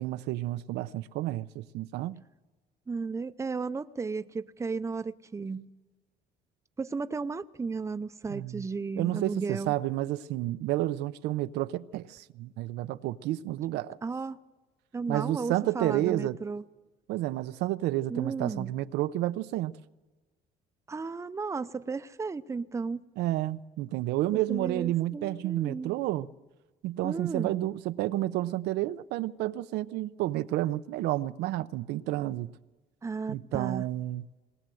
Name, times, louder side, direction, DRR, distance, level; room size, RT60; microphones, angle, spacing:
voice 1, 0.0-2.2 8.3-8.7 9.0-14.0 15.1-16.4 17.1-19.7 23.2-26.3 26.8-32.6 33.3-34.2, right 15 dB, 85° right, 0.6 m, -30 dB
voice 2, 2.9-5.7 6.8-9.7 14.0-14.4 14.9-16.6 18.1-18.7 20.9-23.0 24.3-25.9 27.0-27.6 33.0-33.9, right 4 dB, 15° right, 0.6 m, -34 dB
20.5 x 19.5 x 7.7 m
cardioid pair, 110°, 17 cm